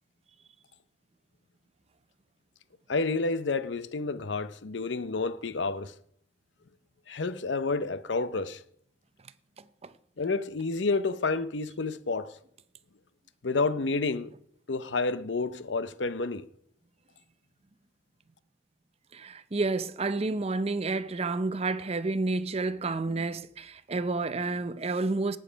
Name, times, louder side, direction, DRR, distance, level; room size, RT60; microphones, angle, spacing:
voice 1, 2.9-5.9 7.1-8.6 10.2-12.4 13.4-14.3 14.7-16.5, left 3 dB, 85° left, 0.7 m, -29 dB
voice 2, 19.1-25.4, right 3 dB, 35° right, 0.6 m, -30 dB
18.0 x 7.8 x 5.2 m
head